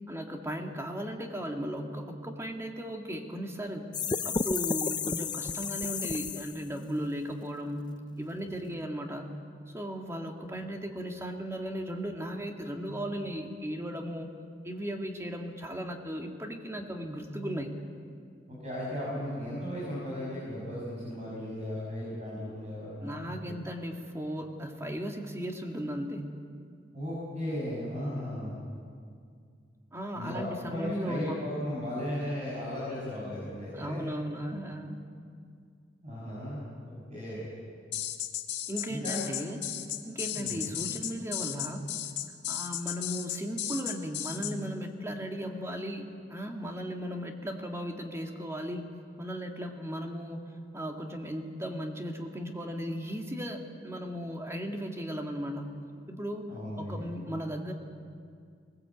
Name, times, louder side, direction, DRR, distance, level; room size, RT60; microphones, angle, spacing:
voice 1, 0.1-3.9 4.2-9.3 9.7-14.3 14.6-17.8 23.0-26.3 29.9-31.4 33.7-35.0 38.7-39.7 40.0-41.9 42.5-48.9 49.2-55.8 56.1-57.7, equal, 15° right, 2 dB, 2.0 m, -36 dB
sound 1, 3.9-6.7, left 5 dB, 25° left, 0.5 m, -32 dB
voice 2, 18.5-23.2 23.4-23.5 26.9-28.6 30.1-34.0 36.0-37.5 38.9-39.2 40.3-40.6 56.5-57.1, left 1 dB, 40° right, -6 dB, 6.2 m, -36 dB
sound 2, 37.9-44.5, left 11 dB, 85° left, 1.4 m, -35 dB
20.5 x 19.5 x 8.4 m, 2.2 s
head